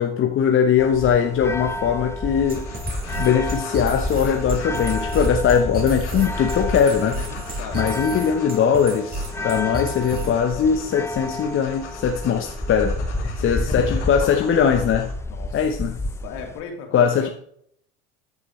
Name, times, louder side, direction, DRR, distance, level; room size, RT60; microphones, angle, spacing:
voice 1, 0.0-2.6 3.2-7.2 7.7-13.0 13.4-15.1 15.5-16.0 16.9-17.3, left 7 dB, 35° left, 1.0 m, -20 dB
sound 1, 0.8-16.6, left 1 dB, 10° left, 0.7 m, -30 dB
sound 2, 2.3-15.1, left 4 dB, 85° left, 2.3 m, -41 dB
sound 3, 2.5-10.5, right 2 dB, 25° right, 3.9 m, -32 dB
voice 2, 7.1-7.8 13.2-14.1 15.2-15.6 16.2-17.3, left 5 dB, 60° left, 2.9 m, -37 dB
13.5 x 7.6 x 3.2 m
hypercardioid pair, 75°, 34 cm